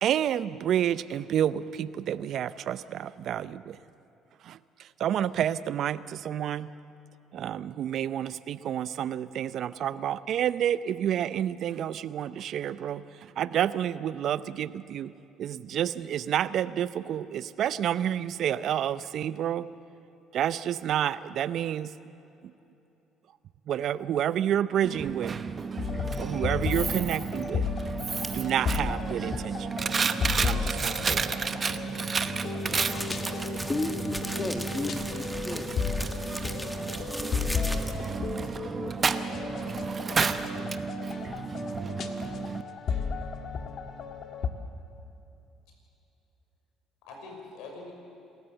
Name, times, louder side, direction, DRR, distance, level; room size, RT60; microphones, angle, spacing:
voice 1, 0.0-3.8 4.4-4.6 5.0-6.7 7.3-13.0 13.4-15.1 15.4-19.7 20.3-21.9 23.7-25.4 26.2-27.7 28.3-29.7 30.4-31.4, right 10 dB, 60° right, 0.6 m, -29 dB
Coin (dropping), 24.8-42.6, right 5 dB, 40° right, 0.9 m, -32 dB
sound 1, 25.8-44.5, left 5 dB, 55° left, 1.7 m, -34 dB
sound 2, 28.2-28.5 31.6-38.2, equal, ahead, 1.8 m, -39 dB
voice 2, 32.5-33.5 47.1-47.9, left 3 dB, 75° left, 6.0 m, -44 dB
voice 3, 33.7-35.7, left 2 dB, 25° left, 1.6 m, -33 dB
27.5 x 13.5 x 7.9 m
supercardioid pair, 70°, 0 cm